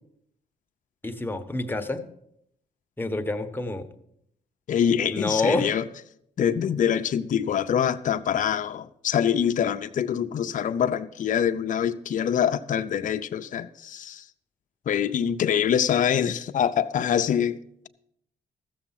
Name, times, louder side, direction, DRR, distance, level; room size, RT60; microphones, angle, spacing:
voice 1, 1.0-2.1 3.0-3.9 5.1-5.8, left 2 dB, 15° left, 1.1 m, -28 dB
voice 2, 4.7-5.8 6.4-14.2 14.9-17.6, left 8 dB, 55° left, 0.6 m, -25 dB
14.0 x 6.9 x 5.7 m
cardioid pair, 80°, 16 cm